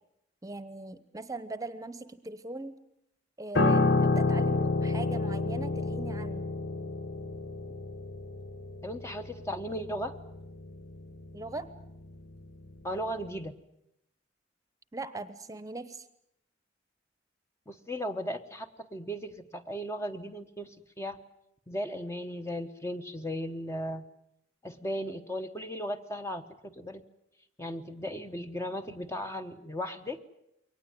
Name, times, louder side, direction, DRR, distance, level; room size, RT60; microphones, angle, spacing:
voice 1, 0.4-2.8 3.4-6.5 11.3-11.7 14.9-16.0, right 2 dB, 20° right, 14 dB, 1.0 m, -40 dB
Piano, 3.5-12.9 13.2-13.5, left 3 dB, 65° left, 1.2 m, -30 dB
voice 2, 8.8-10.2 12.8-13.6 17.7-21.2 21.7-24.0 24.6-27.0 27.6-30.2, equal, 15° left, 7 dB, 1.0 m, -36 dB
22.5 x 19.0 x 9.3 m, 0.80 s
head